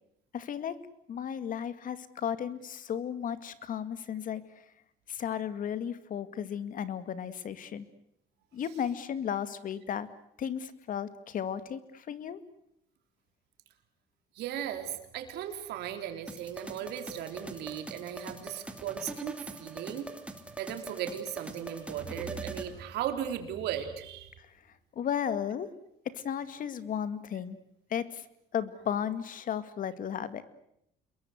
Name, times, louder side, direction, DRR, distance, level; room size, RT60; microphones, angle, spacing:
voice 1, 0.3-0.8 1.1-4.4 5.1-7.9 8.5-10.1 10.4-12.4 24.4-24.5 25.0-25.7 26.1-27.6 27.9-28.2 28.5-30.4, left 8 dB, 55° left, 13 dB, 2.1 m, -34 dB
voice 2, 14.4-20.1 20.6-24.3, right 10 dB, 80° right, 6 dB, 3.9 m, -37 dB
sound 1, 16.3-22.7, right 2 dB, 5° right, 3.0 m, -43 dB
28.0 x 22.5 x 8.1 m, 0.77 s
cardioid pair, 110°, 17 cm